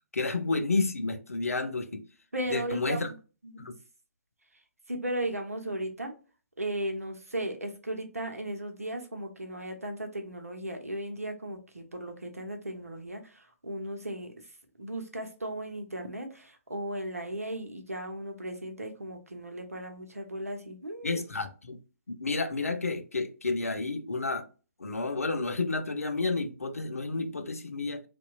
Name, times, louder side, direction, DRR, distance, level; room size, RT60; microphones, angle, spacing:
voice 1, 0.1-2.0 2.5-3.1 3.6-3.8 21.0-21.8 22.1-24.5 24.8-28.0, left 3 dB, 80° left, 0.4 m, -30 dB
voice 2, 2.3-3.2 3.4-3.6 4.9-6.1 6.6-14.3 14.8-21.2, right 1 dB, 80° right, 0.7 m, -36 dB
2.7 x 2.2 x 2.2 m
figure-of-eight pair, 130°, 8 cm